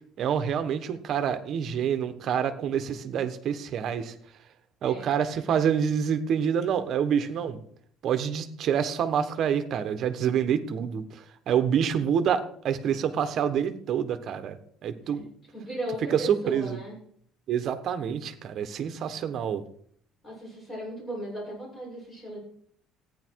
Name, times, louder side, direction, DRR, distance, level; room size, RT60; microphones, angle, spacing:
voice 1, 0.2-4.1 4.8-7.6 8.0-11.0 11.5-14.6 14.8-15.3 16.1-16.8 17.5-19.6, right 8 dB, 45° right, 9 dB, 1.2 m, -27 dB
voice 2, 4.8-5.2 15.5-17.0 20.2-22.4, equal, 20° left, -4 dB, 6.9 m, -37 dB
14.5 x 9.6 x 4.7 m, 0.62 s
cardioid pair, 170°, 0 cm